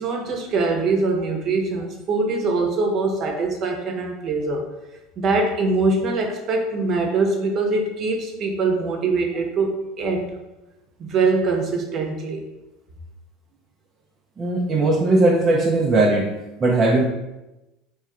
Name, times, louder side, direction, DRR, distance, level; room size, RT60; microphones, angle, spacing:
voice 1, 0.0-4.6 5.2-10.3 11.0-12.4, right 3 dB, 50° right, 2 dB, 1.0 m, -23 dB
voice 2, 14.4-16.3 16.6-17.0, right 2 dB, 30° right, -3 dB, 0.7 m, -18 dB
3.6 x 3.1 x 4.3 m, 1.0 s
hypercardioid pair, 85°, 0 cm